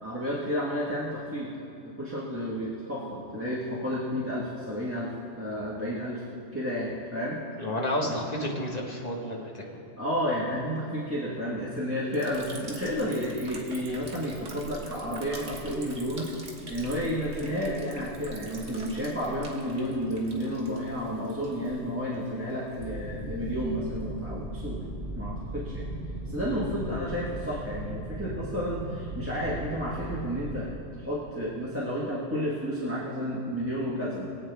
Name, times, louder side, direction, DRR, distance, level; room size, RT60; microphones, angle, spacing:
voice 1, 0.0-1.5 2.0-5.1 5.4-6.2 6.5-7.4 8.1-8.2 10.0-16.3 16.7-24.9 25.1-25.8 26.2-30.7 31.0-34.3, equal, 10° right, -7 dB, 1.6 m, -31 dB
voice 2, 7.6-9.8, left 1 dB, 35° left, -1 dB, 1.6 m, -31 dB
Liquid, 12.1-24.6, right 2 dB, 60° right, 1.7 m, -45 dB
sound 1, 22.8-30.6, right 1 dB, 35° right, 2.5 m, -37 dB
23.0 x 8.5 x 3.5 m, 2.7 s
omnidirectional pair, 1.3 m